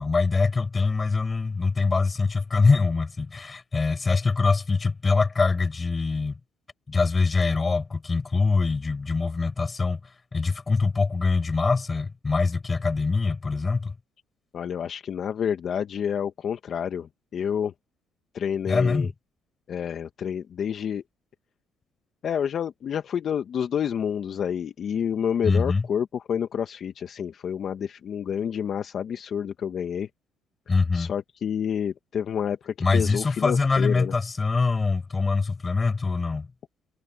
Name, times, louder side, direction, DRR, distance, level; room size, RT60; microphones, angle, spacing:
voice 1, 0.0-6.4 6.9-10.0 10.3-13.9 18.7-19.1 25.4-25.9 30.7-31.1 32.8-36.5, left 4 dB, 30° left, 5.3 m, -24 dB
voice 2, 14.5-17.7 18.3-19.1 19.7-21.0 22.2-30.1 30.9-34.1, left 8 dB, 55° left, 1.4 m, -29 dB
cardioid pair, 85°, 0 cm